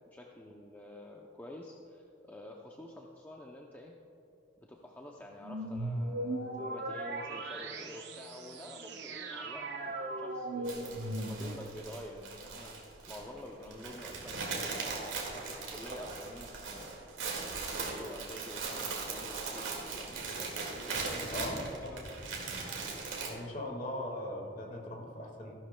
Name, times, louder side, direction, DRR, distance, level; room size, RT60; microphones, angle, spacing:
voice 1, 0.1-3.9 4.6-17.0 17.7-22.2, left 1 dB, 10° left, -1 dB, 0.5 m, -49 dB
sound 1, 5.4-11.7, right 1 dB, 55° right, 0.8 m, -38 dB
sound 2, 10.7-23.3, right 4 dB, 70° right, 1.9 m, -39 dB
voice 2, 21.3-21.9 23.3-25.5, left 1 dB, 40° left, 0 dB, 1.7 m, -39 dB
14.5 x 11.5 x 2.2 m, 2.8 s
head